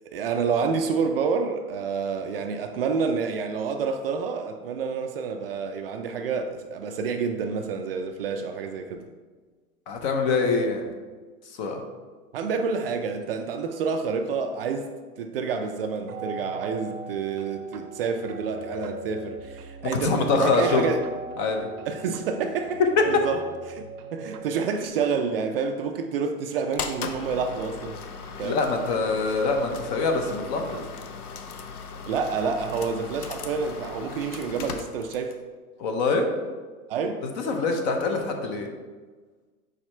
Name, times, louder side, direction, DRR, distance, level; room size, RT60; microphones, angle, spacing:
voice 1, 0.1-9.1 12.3-14.9 15.2-21.0 21.9-22.8 23.1-23.4 23.7-23.8 24.1-28.0 28.4-28.6 32.1-35.4 36.9-37.3, right 5 dB, 45° right, 6 dB, 0.4 m, -28 dB
voice 2, 9.9-10.8 11.6-11.8 19.8-20.9 21.4-21.7 28.4-30.8 35.8-36.3 37.2-38.7, left 3 dB, 30° left, 4 dB, 0.6 m, -25 dB
sound 1, 16.1-24.9, right 3 dB, 90° right, 0.9 m, -39 dB
sound 2, 26.7-35.4, left 5 dB, 80° left, 0.8 m, -38 dB
4.9 x 4.7 x 4.3 m, 1.4 s
hypercardioid pair, 140°, 44 cm